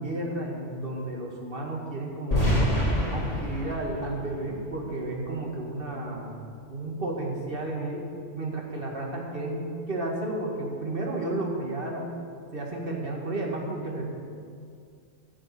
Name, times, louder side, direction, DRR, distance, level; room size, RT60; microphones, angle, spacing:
voice 1, 0.0-2.7 3.1-6.4 6.7-8.1 8.4-12.2 12.5-14.1, right 2 dB, 45° right, -1 dB, 2.3 m, -32 dB
sound 1, 2.3-5.3, equal, 30° left, 3.7 m, -27 dB
16.0 x 7.4 x 7.1 m, 2.2 s
omnidirectional pair, 1.3 m